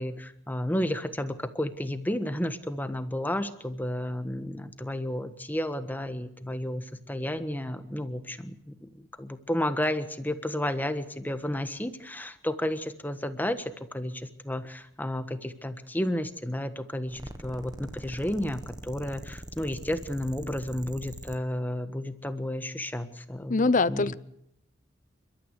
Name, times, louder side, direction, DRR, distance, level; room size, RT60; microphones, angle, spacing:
voice 1, 0.0-24.1, left 1 dB, 10° left, 10 dB, 1.5 m, -32 dB
sound 1, 17.1-21.4, right 1 dB, 20° right, 1.6 m, -42 dB
voice 2, 23.5-24.1, left 3 dB, 45° left, 17 dB, 0.8 m, -23 dB
29.5 x 13.0 x 8.4 m, 0.79 s
head